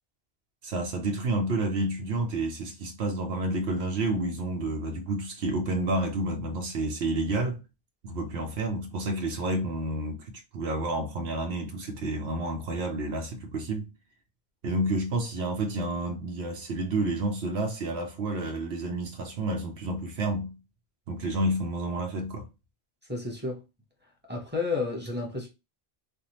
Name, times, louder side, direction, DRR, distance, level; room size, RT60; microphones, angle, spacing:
voice 1, 0.6-7.6 8.0-13.9 14.6-20.5 21.1-22.5, right 2 dB, 90° right, 1.0 m, -30 dB
voice 2, 23.1-23.6 24.3-25.5, left 3 dB, 10° right, 1.0 m, -31 dB
3.5 x 2.3 x 2.9 m
omnidirectional pair, 1.0 m